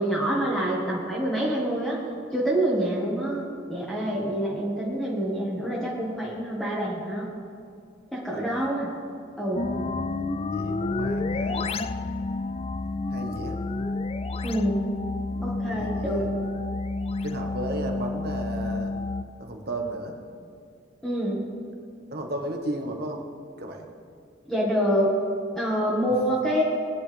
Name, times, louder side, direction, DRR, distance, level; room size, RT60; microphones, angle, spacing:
voice 1, 0.0-2.0 2.3-3.4 3.7-7.3 8.1-8.9 9.4-9.7 14.4-14.8 15.4-16.2 21.0-21.4 24.5-25.1 25.5-26.6, equal, 5° left, -6 dB, 1.7 m, -26 dB
voice 2, 8.3-8.7 10.5-11.8 13.1-13.6 15.3-16.3 17.2-18.9 19.4-20.1 22.1-23.2 23.6-23.9, right 1 dB, 55° right, 2 dB, 1.5 m, -34 dB
sound 1, 9.5-19.2, left 3 dB, 30° left, 0.4 m, -30 dB
20.5 x 9.8 x 3.5 m, 2.3 s
head